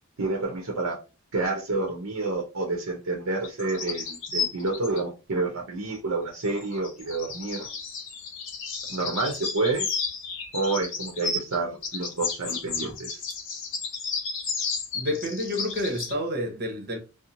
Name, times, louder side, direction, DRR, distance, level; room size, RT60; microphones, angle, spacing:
voice 1, 0.2-1.0 1.3-7.7 8.9-9.9 10.5-13.2, right 3 dB, 85° right, 0.7 m, -29 dB
sound 1, 3.4-5.0 6.3-11.6 11.8-16.1, left 5 dB, 60° left, 0.7 m, -33 dB
voice 2, 14.9-17.0, left 1 dB, 45° right, 0.8 m, -29 dB
3.0 x 2.0 x 2.5 m
head